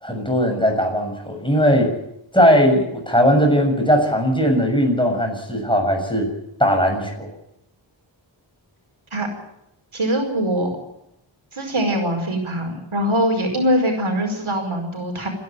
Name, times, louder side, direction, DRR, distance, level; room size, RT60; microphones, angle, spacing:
voice 1, 0.0-1.9 2.3-6.3 6.6-7.3, equal, 10° left, 3 dB, 6.7 m, -18 dB
voice 2, 9.9-10.7 11.5-15.3, equal, 80° right, 3 dB, 5.1 m, -22 dB
28.5 x 11.0 x 9.1 m, 0.83 s
wide cardioid pair, 60°, 47 cm